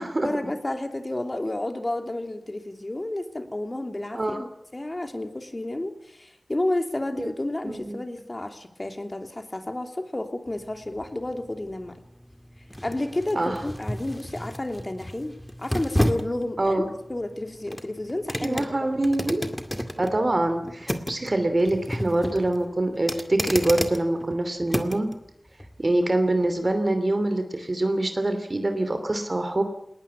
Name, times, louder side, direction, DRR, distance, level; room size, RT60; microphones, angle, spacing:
voice 1, 0.2-4.5 4.7-12.0 12.8-16.8 17.1-18.7, left 1 dB, 35° left, 6 dB, 2.9 m, -31 dB
voice 2, 7.6-8.0 13.3-13.6 16.6-16.9 18.4-19.4 20.0-25.1 25.8-29.6, right 1 dB, 45° right, 8 dB, 2.9 m, -25 dB
sound 1, 10.5-25.2 25.6-25.7, equal, 10° left, 2.1 m, -32 dB
20.0 x 19.5 x 9.7 m, 0.78 s
wide cardioid pair, 55°, 0 cm